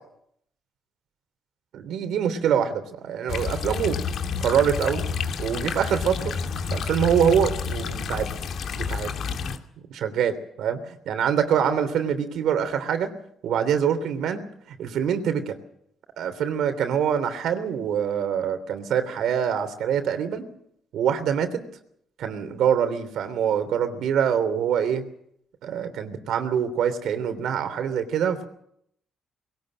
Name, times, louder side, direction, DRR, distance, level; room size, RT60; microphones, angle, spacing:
voice 1, 1.7-4.0 4.4-5.1 5.4-6.3 6.7-8.3 8.7-9.1 9.9-10.8 11.0-13.1 13.4-14.4 14.8-15.6 16.2-20.4 20.9-21.6 22.2-25.0 25.6-28.4, right 8 dB, 75° right, 10 dB, 3.2 m, -24 dB
sound 1, 3.3-9.6, left 5 dB, 65° left, 2.4 m, -29 dB
21.5 x 18.5 x 7.7 m, 0.72 s
cardioid pair, 90°, 0 cm